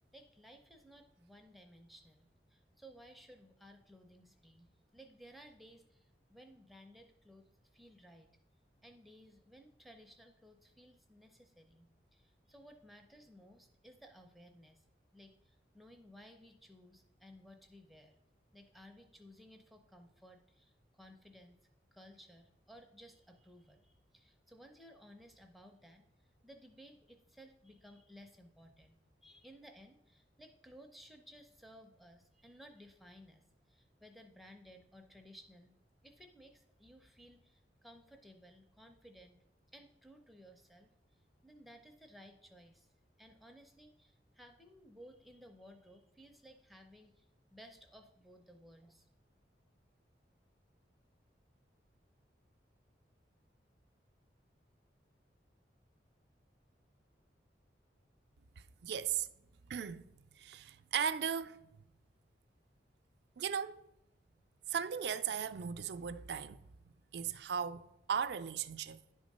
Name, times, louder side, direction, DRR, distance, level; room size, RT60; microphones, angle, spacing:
voice 1, 0.0-8.3 8.8-14.8 15.1-18.2 18.5-21.6 21.9-35.7 36.0-39.4 39.7-49.1, equal, ahead, 0.5 m, -58 dB
voice 2, 58.8-59.3 59.7-61.7 63.4-63.8 64.7-66.6 67.1-69.0, right 7 dB, 70° right, 0.4 m, -37 dB
10.5 x 3.6 x 5.3 m
head